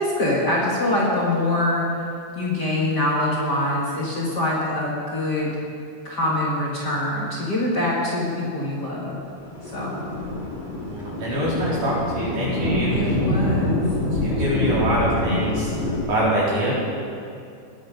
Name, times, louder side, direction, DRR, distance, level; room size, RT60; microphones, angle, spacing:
voice 1, 0.0-1.8 2.3-5.6 6.0-9.2 9.6-10.0 12.9-13.8, left 1 dB, 35° left, -6 dB, 2.1 m, -24 dB
Thunder, 9.2-16.1, left 1 dB, 20° left, 2.3 m, -26 dB
voice 2, 10.9-13.1 14.0-16.7, equal, 70° right, -8 dB, 5.7 m, -24 dB
19.5 x 8.9 x 5.2 m, 2.5 s
omnidirectional pair, 3.7 m